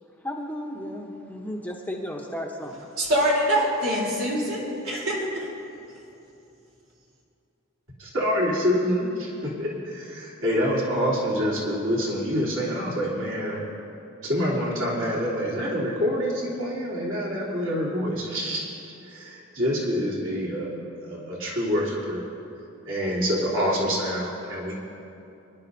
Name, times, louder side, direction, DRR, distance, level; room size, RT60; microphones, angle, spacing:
voice 1, 0.2-2.9, equal, 10° left, 0.9 m, -34 dB
voice 2, 3.0-5.5, equal, 85° right, 3.5 m, -24 dB
voice 3, 8.0-13.6 14.2-18.7 19.0-22.2 22.8-24.7, equal, 65° right, 3.3 m, -26 dB
25.0 x 11.0 x 2.7 m
head